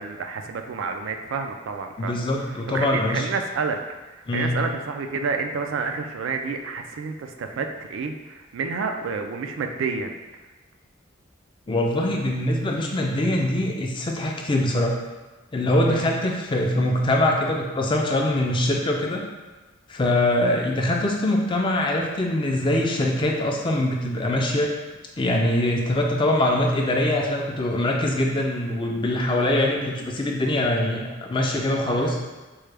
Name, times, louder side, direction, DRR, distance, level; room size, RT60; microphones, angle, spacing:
voice 1, 0.0-2.2 2.7-3.8 4.1-10.1 15.9-16.1 31.8-32.2, right 4 dB, 65° right, 5 dB, 0.3 m, -29 dB
voice 2, 2.0-3.3 4.3-4.6 11.7-14.9 15.5-19.2 19.9-24.7 25.2-32.2, left 1 dB, 25° left, 0 dB, 0.4 m, -23 dB
4.6 x 2.2 x 3.3 m, 1.2 s
head